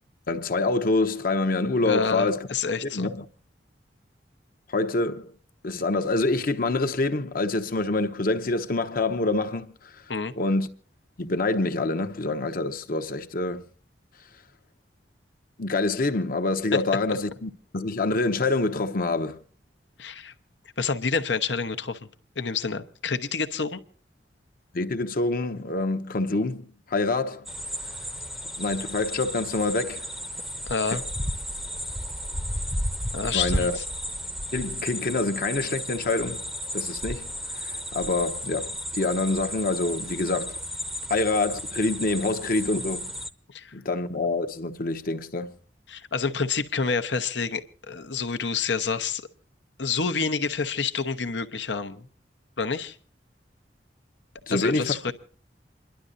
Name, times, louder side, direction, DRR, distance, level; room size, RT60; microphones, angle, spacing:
voice 1, 0.3-2.4 2.9-3.2 4.7-5.3 5.6-9.7 10.4-10.7 11.2-13.6 15.6-19.4 24.7-27.5 28.6-30.1 33.3-33.8 34.5-36.5 36.7-37.3 37.6-40.6 41.1-43.1 43.7-45.5 54.5-55.0, left 2 dB, 55° left, 1.0 m, -26 dB
voice 2, 1.8-3.1 10.1-10.3 16.7-16.8 20.0-20.3 20.8-22.1 22.4-23.8 30.7-31.0 33.1-33.8 43.5-43.7 45.9-49.2 49.8-52.1 52.6-53.0 54.5-55.1, left 5 dB, 85° left, 1.0 m, -28 dB
sound 1, 27.5-43.3, equal, ahead, 0.7 m, -33 dB
28.0 x 11.5 x 2.6 m
head